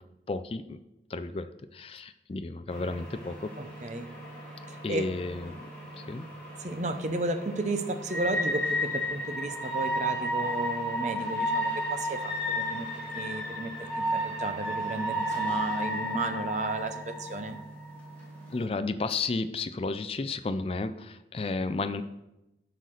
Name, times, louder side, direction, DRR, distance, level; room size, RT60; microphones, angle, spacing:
voice 1, 0.3-0.8 1.1-3.5 4.8-5.7 6.0-6.3 18.5-22.0, left 3 dB, 35° left, 11 dB, 0.4 m, -32 dB
sound 1, 2.7-18.6, equal, 10° left, 2.0 m, -33 dB
voice 2, 3.6-4.1 4.7-5.1 6.6-12.9 13.1-17.6, right 2 dB, 40° right, 9 dB, 0.7 m, -33 dB
11.5 x 4.0 x 6.4 m, 0.92 s
head